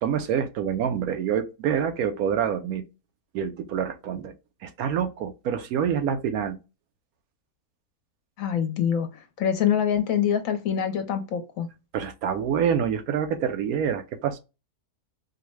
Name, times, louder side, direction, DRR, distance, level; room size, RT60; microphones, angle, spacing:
voice 1, 0.0-2.8 3.3-4.3 4.6-6.6 11.9-14.4, right 8 dB, 75° right, 1.0 m, -26 dB
voice 2, 8.4-11.7, left 8 dB, 70° left, 1.0 m, -25 dB
4.6 x 2.1 x 3.1 m
omnidirectional pair, 1.6 m